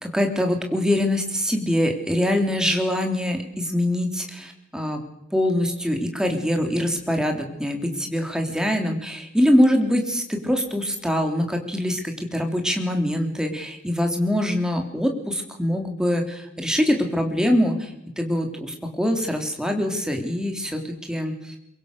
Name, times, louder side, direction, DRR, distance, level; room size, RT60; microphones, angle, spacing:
voice 1, 0.0-5.0 5.3-21.5, left 1 dB, 5° right, 3 dB, 3.2 m, -24 dB
23.5 x 22.5 x 6.7 m, 0.85 s
head